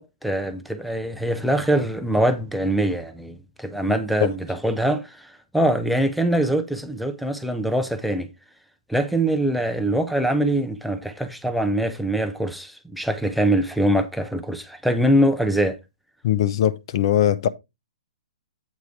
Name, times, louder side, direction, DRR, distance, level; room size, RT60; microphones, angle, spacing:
voice 1, 0.0-8.3 8.9-15.8, right 1 dB, ahead, 0.5 m, -23 dB
voice 2, 16.2-17.5, left 11 dB, 45° left, 0.7 m, -20 dB
8.3 x 4.5 x 4.9 m
hypercardioid pair, 165°, 4 cm